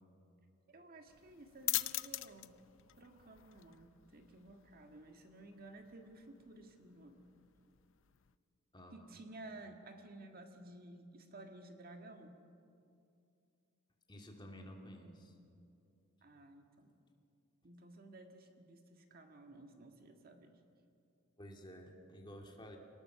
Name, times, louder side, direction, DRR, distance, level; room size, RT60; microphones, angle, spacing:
voice 1, 0.7-2.6 3.0-7.2 8.9-12.4 16.2-17.0 17.6-20.6, right 2 dB, 45° right, 4 dB, 1.8 m, -54 dB
sound 1, 1.1-8.3, left 17 dB, 65° left, 0.6 m, -45 dB
voice 2, 8.7-9.1 14.1-15.3 21.4-22.8, equal, 20° left, 2 dB, 2.5 m, -52 dB
26.0 x 19.0 x 6.9 m, 2.5 s
head